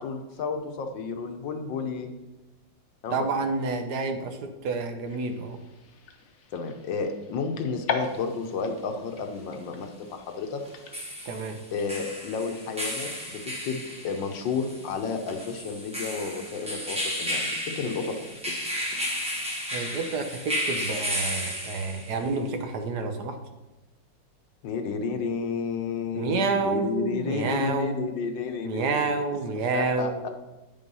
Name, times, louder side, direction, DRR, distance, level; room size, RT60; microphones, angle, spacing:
voice 1, 0.0-2.1 3.0-3.3 6.5-10.6 11.0-11.2 11.7-17.5 17.8-18.2 24.6-29.2 29.7-30.3, left 5 dB, 75° left, 6 dB, 1.6 m, -31 dB
voice 2, 3.1-5.6 11.2-11.6 19.7-23.4 26.1-28.1 28.6-30.3, right 4 dB, 65° right, 6 dB, 1.3 m, -29 dB
sound 1, 5.0-12.3, left 5 dB, 55° left, 1.1 m, -40 dB
sound 2, 8.0-8.1 10.7-22.3, equal, 5° right, 1.3 m, -33 dB
9.5 x 5.4 x 5.4 m, 1.1 s
omnidirectional pair, 2.1 m